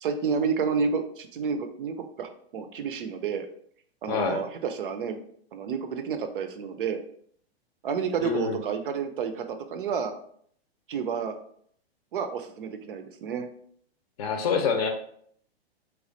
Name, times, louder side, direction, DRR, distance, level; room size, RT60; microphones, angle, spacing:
voice 1, 0.0-3.5 4.0-5.2 5.5-7.0 7.8-10.2 10.9-11.4 12.1-13.5, right 6 dB, 55° right, 8 dB, 0.5 m, -30 dB
voice 2, 4.1-4.4 8.2-8.6 14.2-14.9, left 6 dB, 35° left, 5 dB, 0.6 m, -26 dB
3.1 x 2.3 x 3.9 m, 0.63 s
figure-of-eight pair, 110°, 32 cm